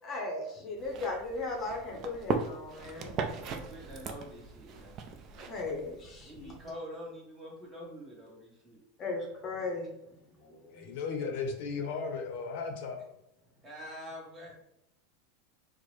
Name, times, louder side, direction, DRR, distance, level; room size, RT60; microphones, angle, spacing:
voice 1, 0.0-3.2 5.4-6.5 9.0-10.0 10.4-10.9, left 3 dB, 25° left, 0 dB, 0.7 m, -37 dB
sound 1, 0.8-6.7, right 5 dB, 35° right, 0.4 m, -39 dB
voice 2, 2.9-4.9 6.2-8.8 13.6-14.6, equal, 20° right, -3 dB, 1.2 m, -46 dB
voice 3, 10.7-13.0, left 5 dB, 65° left, 5 dB, 0.6 m, -36 dB
4.4 x 2.0 x 3.1 m, 0.82 s
supercardioid pair, 155°, 0 cm